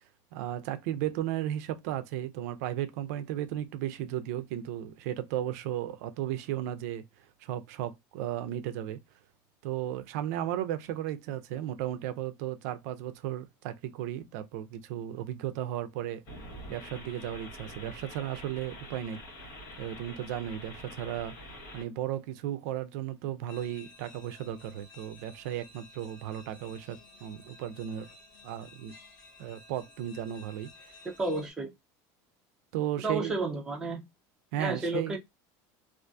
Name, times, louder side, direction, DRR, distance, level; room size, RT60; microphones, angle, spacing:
voice 1, 0.3-7.0 7.4-9.0 9.6-16.2 16.7-19.2 19.8-21.3 21.7-28.1 28.4-28.9 29.4-31.0 32.7-33.4 34.5-35.2, right 12 dB, 70° right, 0.4 m, -35 dB
sound 1, 16.2-21.8, left 1 dB, 70° left, 1.1 m, -46 dB
sound 2, 23.5-31.5, left 3 dB, 45° left, 0.8 m, -54 dB
voice 2, 31.2-31.7 33.0-34.0 34.6-35.2, right 2 dB, 5° right, 0.5 m, -31 dB
2.5 x 2.4 x 2.2 m
cardioid pair, 180°, 9 cm